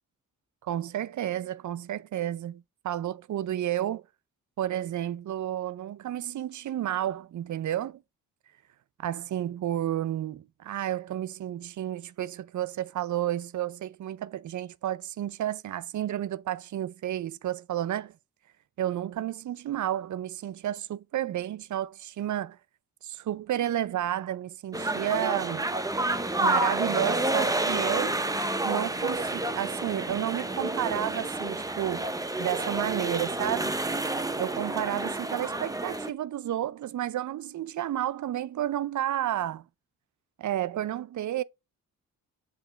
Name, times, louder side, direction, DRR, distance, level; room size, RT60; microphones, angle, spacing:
voice 1, 0.6-4.0 4.6-8.0 9.0-18.1 18.8-22.6 23.0-25.7 26.4-28.2 28.6-32.1 32.4-33.8 34.4-39.6 40.4-41.4, right 12 dB, 60° right, 0.5 m, -31 dB
sound 1, 24.7-36.1, right 2 dB, 10° right, 0.6 m, -29 dB
7.7 x 2.9 x 5.0 m
cardioid pair, 70°, 34 cm